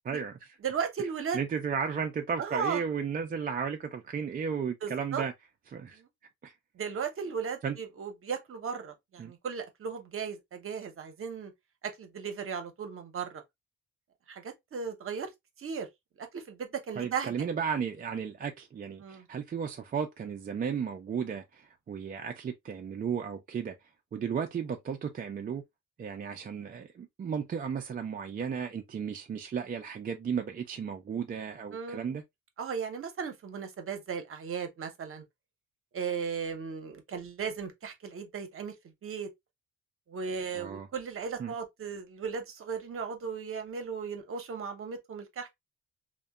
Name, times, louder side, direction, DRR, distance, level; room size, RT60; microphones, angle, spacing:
voice 1, 0.0-0.6 1.0-1.1 1.3-5.3 5.7-6.0 6.4-6.5 7.6-7.8 9.2-9.3 17.0-23.8 24.1-25.6 26.0-32.2 40.5-40.9 41.4-41.5, right 7 dB, 30° right, 0.4 m, -34 dB
voice 2, 0.6-1.4 2.4-2.8 4.8-5.2 5.9-6.1 6.8-11.5 11.8-13.4 14.3-15.3 15.6-15.9 16.2-17.3 19.0-19.3 31.7-32.1 32.6-35.2 35.9-38.7 39.0-39.3 40.1-45.6, right 6 dB, 45° right, 0.8 m, -36 dB
2.7 x 2.1 x 2.2 m
cardioid pair, 90°, 30 cm